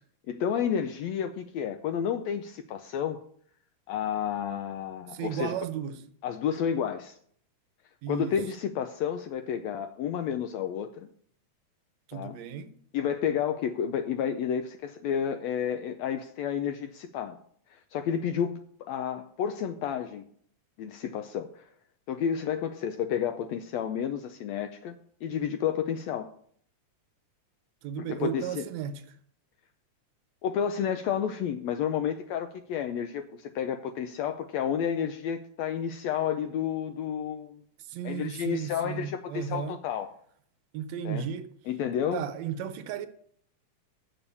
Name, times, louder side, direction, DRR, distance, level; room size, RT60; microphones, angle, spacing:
voice 1, 0.3-3.2 3.9-5.5 6.2-7.2 8.1-11.1 12.1-12.3 12.9-17.4 17.7-20.2 20.8-21.6 22.1-25.0 25.2-26.3 28.1-28.7 30.4-37.6 38.0-40.1 41.0-41.3 41.7-42.2, left 8 dB, 80° left, 1.6 m, -31 dB
voice 2, 5.1-6.0 8.0-8.4 12.1-12.8 27.8-29.2 37.8-39.8 40.7-41.5 42.1-43.1, right 8 dB, 75° right, 1.8 m, -34 dB
7.1 x 7.0 x 8.1 m
omnidirectional pair, 3.5 m